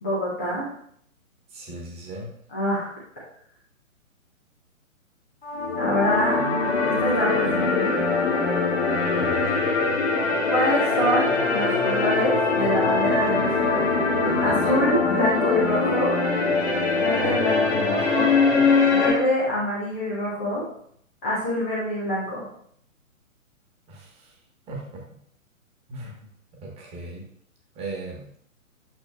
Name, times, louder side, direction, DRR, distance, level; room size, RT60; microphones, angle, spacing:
voice 1, 0.0-0.7 2.5-2.9 5.8-6.4 6.8-8.0 10.5-13.9 14.4-16.2 16.9-18.3 18.9-20.6 21.2-22.4, equal, 10° left, -8 dB, 0.4 m, -25 dB
voice 2, 1.5-2.3 9.1-9.5 14.2-14.7 23.9-24.4 24.7-25.0 25.9-26.3 26.6-27.2 27.7-28.3, right 2 dB, 15° right, -1 dB, 1.2 m, -37 dB
sound 1, 5.4-19.1, left 4 dB, 50° left, 1.6 m, -22 dB
8.8 x 6.1 x 2.3 m, 0.67 s
figure-of-eight pair, 125°, 42 cm